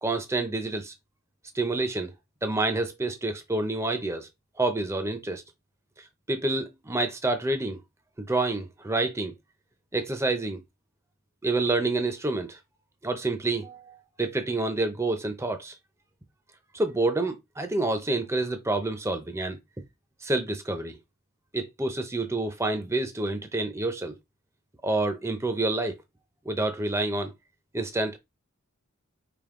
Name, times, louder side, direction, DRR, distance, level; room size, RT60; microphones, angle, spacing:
voice 1, 0.0-0.9 1.5-2.1 2.4-4.3 4.6-5.4 6.3-7.8 8.2-9.3 9.9-10.6 11.4-12.6 13.0-15.8 16.7-19.6 20.2-21.0 21.5-24.1 24.8-25.9 26.5-27.3 27.7-28.2, right 2 dB, 15° right, 0.6 m, -28 dB
5.2 x 2.6 x 3.7 m
head